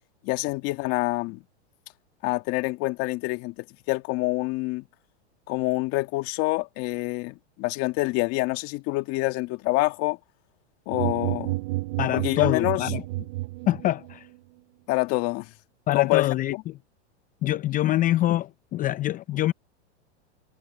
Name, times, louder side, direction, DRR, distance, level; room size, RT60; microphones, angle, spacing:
voice 1, 0.2-1.4 2.2-3.5 3.9-4.8 5.5-10.2 10.9-11.6 12.1-12.9 14.9-15.5 15.9-16.6, left 22 dB, 45° left, 1.9 m, -26 dB
sound 1, 10.9-14.2, right 20 dB, 50° right, 0.9 m, -30 dB
voice 2, 12.0-13.0 13.7-14.3 15.9-16.8 17.4-19.5, left 14 dB, 25° left, 0.6 m, -25 dB
hypercardioid pair, 130°, 34 cm